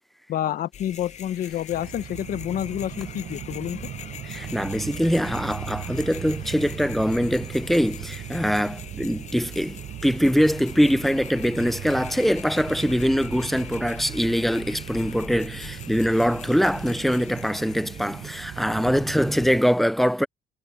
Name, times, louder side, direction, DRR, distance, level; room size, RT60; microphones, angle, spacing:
voice 1, 0.3-3.9, left 11 dB, 60° left, 1.0 m, -29 dB
sound 1, 0.7-19.6, left 9 dB, 45° left, 0.7 m, -43 dB
sound 2, 1.7-19.6, right 12 dB, 50° right, 0.8 m, -38 dB
voice 2, 4.2-20.3, equal, ahead, 0.6 m, -23 dB
cardioid pair, 110°, 17 cm